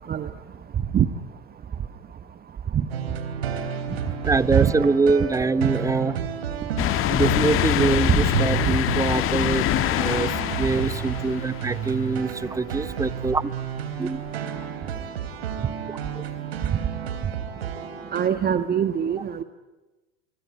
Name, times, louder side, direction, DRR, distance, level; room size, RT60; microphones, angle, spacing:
sound 1, 2.9-18.3, right 8 dB, 80° right, 3.8 m, -31 dB
voice 1, 4.2-6.1 7.1-9.7 10.0-13.5 14.0-14.2 16.2-16.3, right 3 dB, 10° right, 17 dB, 1.0 m, -24 dB
sound 2, 6.8-12.3 12.8-12.9 14.3-14.4, left 12 dB, 45° left, 1.8 m, -25 dB
voice 2, 18.1-19.4, right 9 dB, 30° right, 10 dB, 1.5 m, -22 dB
24.5 x 24.5 x 9.4 m, 1.1 s
hypercardioid pair, 90°, 30 cm